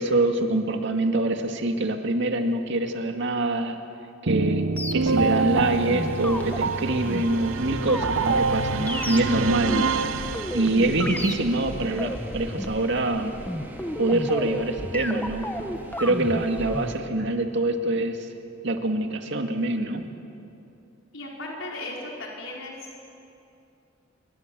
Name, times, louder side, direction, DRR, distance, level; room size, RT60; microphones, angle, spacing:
voice 1, 0.0-3.8 4.2-10.2 10.5-13.4 14.0-18.3 18.6-20.0, right 2 dB, 65° right, 5 dB, 2.2 m, -25 dB
sound 1, 4.3-11.0, right 4 dB, 80° right, 0.9 m, -26 dB
sound 2, 4.8-16.9, left 1 dB, 10° left, 1.3 m, -33 dB
sound 3, 5.5-17.0, equal, 10° right, 2.9 m, -42 dB
voice 2, 21.1-22.7, left 2 dB, 90° left, -2 dB, 4.8 m, -36 dB
27.0 x 23.5 x 7.7 m, 2.7 s
head